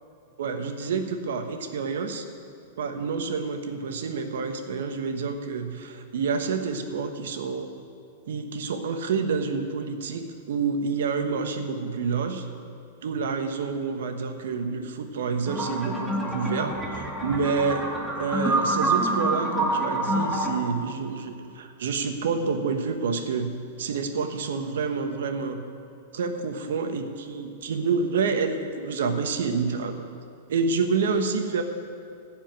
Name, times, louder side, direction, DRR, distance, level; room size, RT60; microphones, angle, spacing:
voice 1, 0.4-2.3 2.8-7.7 8.3-12.4 13.0-17.9 18.2-23.5 23.8-25.6 26.1-30.1 30.5-31.6, right 5 dB, 75° right, 6 dB, 1.3 m, -28 dB
sound 1, 15.5-20.6, right 2 dB, 5° right, 1.7 m, -27 dB
15.0 x 5.2 x 9.1 m, 2.4 s
hypercardioid pair, 135°, 0 cm